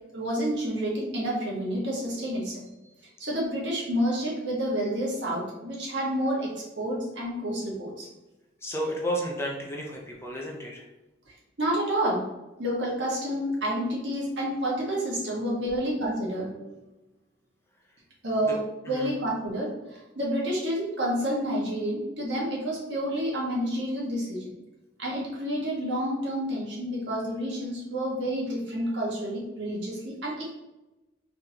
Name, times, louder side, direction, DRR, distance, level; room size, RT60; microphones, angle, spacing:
voice 1, 0.1-2.7 3.2-8.1 11.6-12.2 12.6-16.9 18.2-18.6 18.9-24.5 25.0-30.5, equal, 75° right, -4 dB, 1.5 m, -29 dB
voice 2, 8.6-10.9 18.9-19.1, equal, 15° left, -1 dB, 0.5 m, -32 dB
3.8 x 3.4 x 2.8 m, 0.99 s
head